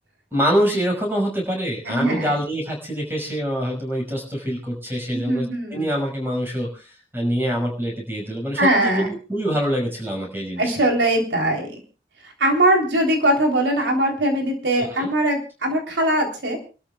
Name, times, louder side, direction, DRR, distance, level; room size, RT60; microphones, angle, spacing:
voice 1, 0.3-10.9 14.8-15.1, equal, 15° right, 0 dB, 5.8 m, -25 dB
voice 2, 1.9-2.3 5.1-5.9 8.6-9.1 10.6-11.8 12.2-16.6, right 1 dB, 90° right, 2 dB, 3.6 m, -21 dB
28.5 x 13.0 x 2.4 m, 0.33 s
head